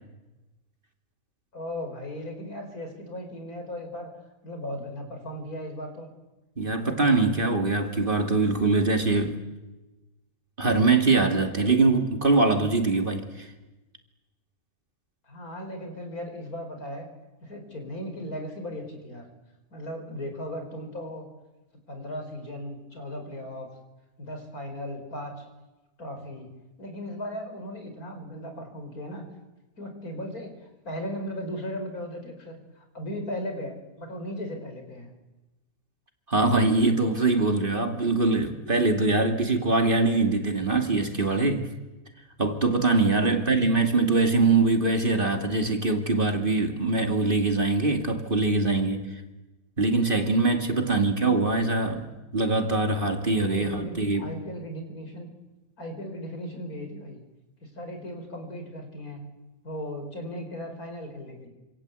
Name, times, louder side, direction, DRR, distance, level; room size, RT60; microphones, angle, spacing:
voice 1, 1.5-4.1 4.4-6.1 15.3-17.1 17.4-19.3 19.7-21.3 21.9-23.7 24.2-25.4 26.0-26.5 26.8-29.3 29.8-30.5 30.9-35.1 43.2-43.4 50.6-51.1 53.2-55.3 55.8-57.2 57.6-59.2 59.6-61.5, equal, 80° left, 5.4 m, -37 dB
voice 2, 6.6-9.4 10.6-13.3 36.3-41.7 42.4-49.1 49.8-54.3, right 3 dB, 35° right, 2.6 m, -23 dB
27.0 x 26.5 x 8.3 m
omnidirectional pair, 1.5 m